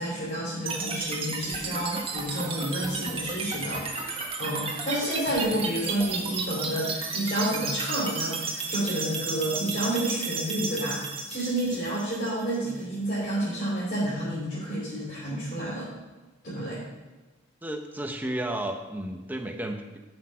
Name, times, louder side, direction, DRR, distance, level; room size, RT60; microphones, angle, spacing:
voice 1, 0.0-15.9 16.4-16.8, right 1 dB, 40° left, -9 dB, 3.2 m, -30 dB
sound 1, 0.7-12.7, right 4 dB, 25° right, 1.5 m, -33 dB
voice 2, 17.6-19.8, right 1 dB, 10° right, 4 dB, 0.9 m, -32 dB
12.0 x 6.4 x 5.8 m, 1.2 s
head